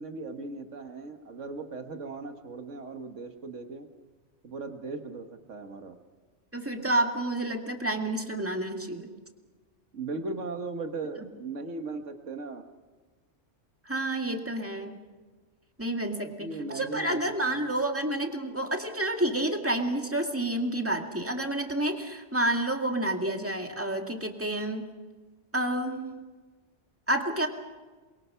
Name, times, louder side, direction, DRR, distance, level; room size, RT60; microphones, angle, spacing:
voice 1, 0.0-3.9 4.4-6.0 9.9-12.7 16.2-17.2 17.5-17.7, right 3 dB, 85° right, 6 dB, 1.9 m, -38 dB
voice 2, 6.5-9.1 13.9-15.0 15.8-16.5 16.7-24.9 25.5-26.2 27.1-27.5, right 1 dB, 10° right, 3 dB, 2.1 m, -29 dB
28.5 x 23.0 x 5.7 m, 1.3 s
omnidirectional pair, 1.2 m